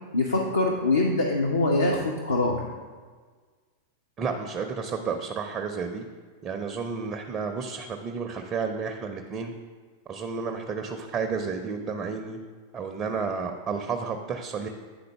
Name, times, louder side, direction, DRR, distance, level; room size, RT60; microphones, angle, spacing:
voice 1, 0.1-2.6, left 2 dB, 75° left, -1 dB, 0.5 m, -24 dB
voice 2, 4.2-6.0 6.4-9.5 10.1-12.4 12.7-14.7, right 5 dB, 25° right, 5 dB, 0.4 m, -31 dB
9.3 x 3.8 x 3.3 m, 1.5 s
figure-of-eight pair, 90°, 0 cm